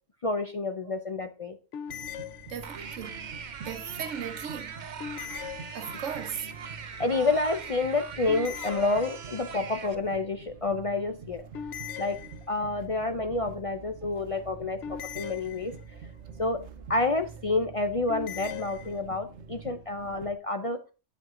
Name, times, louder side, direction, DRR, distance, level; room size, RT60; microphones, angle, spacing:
voice 1, 0.2-1.6 7.0-11.4 12.0-12.2 12.5-15.7 16.4-16.6 16.9-20.8, left 2 dB, 45° left, 0.4 m, -29 dB
sound 1, 1.7-3.0 5.0-6.3 8.3-9.6 11.5-12.8 14.8-16.1 18.1-19.0, left 9 dB, 85° left, 1.0 m, -40 dB
sound 2, 1.9-20.3, right 5 dB, 75° right, 1.1 m, -46 dB
voice 2, 2.5-3.3 3.6-4.8 5.7-6.5, right 8 dB, 90° right, 1.2 m, -37 dB
sound 3, 2.6-9.9, right 6 dB, 45° right, 0.7 m, -41 dB
10.5 x 4.5 x 3.7 m
omnidirectional pair, 1.2 m